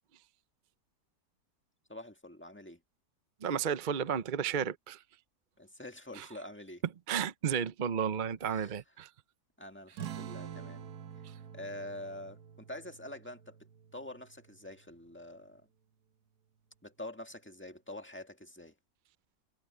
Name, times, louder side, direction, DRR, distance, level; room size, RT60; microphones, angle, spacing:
voice 1, 1.9-2.8 5.6-6.8 8.4-8.8 9.6-10.9 11.5-15.7 16.8-18.7, left 1 dB, 5° left, 1.6 m, -46 dB
voice 2, 3.4-5.0 6.2-6.3 7.1-9.1, right 7 dB, 50° right, 0.6 m, -32 dB
sound 1, 10.0-15.0, right 9 dB, 75° right, 1.5 m, -47 dB
omnidirectional pair, 1.7 m